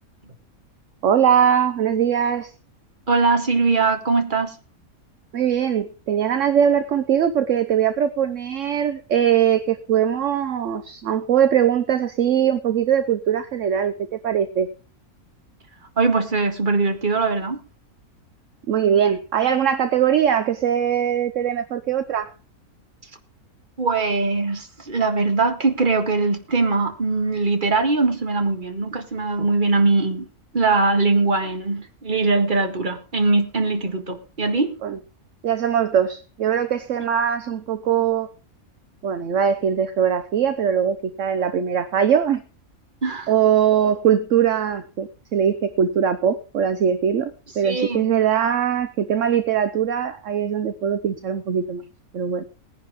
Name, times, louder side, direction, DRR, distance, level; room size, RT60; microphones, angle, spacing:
voice 1, 1.0-2.5 5.3-14.7 18.7-22.3 34.8-35.0 35.4-38.3 39.0-42.4 43.3-51.8 52.1-52.4, right 8 dB, 65° right, 1.1 m, -21 dB
voice 2, 3.1-4.5 16.0-17.6 23.8-30.3 30.5-34.8 43.0-43.3 47.6-48.1, right 3 dB, 35° right, 1.8 m, -21 dB
19.0 x 10.5 x 3.7 m
omnidirectional pair, 1.5 m